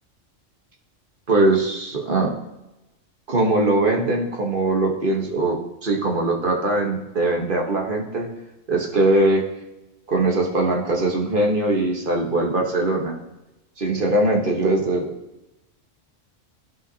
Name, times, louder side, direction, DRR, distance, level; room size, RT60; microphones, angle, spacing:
voice 1, 1.3-2.4 3.3-8.3 8.7-9.4 10.1-13.2 13.8-15.1, right 2 dB, 45° right, 0 dB, 1.3 m, -21 dB
12.0 x 5.6 x 2.7 m, 0.96 s
omnidirectional pair, 1.3 m